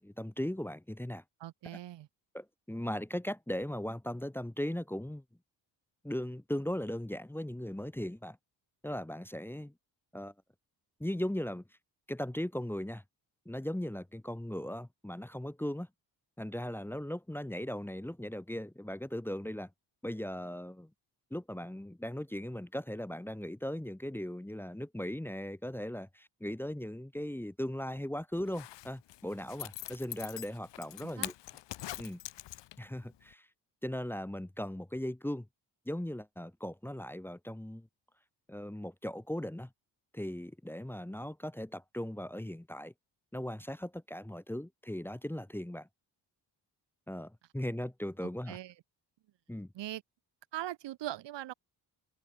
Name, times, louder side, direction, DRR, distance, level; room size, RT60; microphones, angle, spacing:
voice 1, 0.0-1.2 2.3-5.2 6.0-8.4 8.8-9.7 10.1-10.3 11.0-11.6 12.1-13.0 13.4-15.9 16.4-19.7 20.0-20.9 21.3-31.3 32.0-32.2 32.8-33.5 33.8-35.5 35.8-37.9 38.5-39.7 40.1-42.9 43.3-45.9 47.1-48.6 49.5-49.7, left 1 dB, 5° left, 1.5 m, -38 dB
voice 2, 1.4-2.1 31.0-31.3 48.2-48.7 49.7-50.0 50.5-51.5, right 13 dB, 80° right, 3.0 m, -41 dB
Zipper (clothing), 28.4-33.0 33.3-33.4, left 15 dB, 90° left, 2.2 m, -43 dB
cardioid pair, 90°, 42 cm